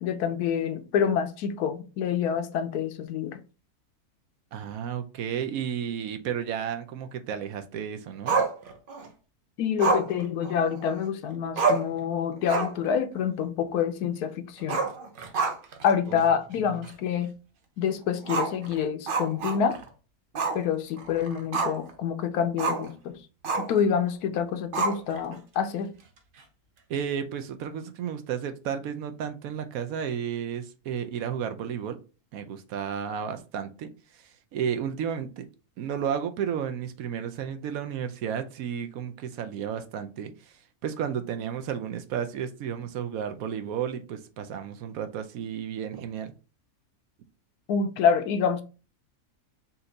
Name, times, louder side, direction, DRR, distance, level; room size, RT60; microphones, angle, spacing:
voice 1, 0.0-3.4 9.6-14.9 15.8-17.3 17.8-19.8 20.5-23.1 23.6-25.9 47.7-48.6, left 7 dB, 80° left, 1.2 m, -27 dB
voice 2, 4.5-8.4 16.1-16.2 26.9-32.0 32.3-35.5 35.8-46.3, right 8 dB, 70° right, 1.0 m, -33 dB
Growling, 8.3-9.1 9.8-11.0 11.3-11.4 11.6-12.0 12.4-12.9 13.2-13.3 14.6-15.8 16.2-16.3 16.8-16.9 18.2-19.9 20.3-20.6 21.0-21.9 22.6-22.9 23.4-23.8 24.7-25.3, right 4 dB, 55° right, 0.6 m, -28 dB
4.3 x 2.6 x 3.8 m
omnidirectional pair, 1.6 m